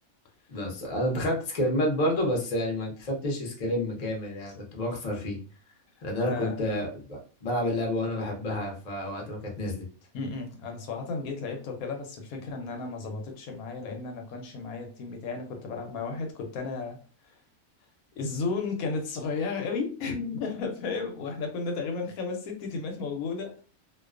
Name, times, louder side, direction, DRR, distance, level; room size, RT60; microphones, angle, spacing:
voice 1, 0.5-5.4 6.0-9.9, left 1 dB, 45° left, 0 dB, 0.5 m, -29 dB
voice 2, 6.2-6.7 10.1-17.0 18.2-23.6, left 4 dB, 75° left, 3 dB, 1.0 m, -33 dB
2.3 x 2.2 x 2.3 m, 0.39 s
omnidirectional pair, 1.5 m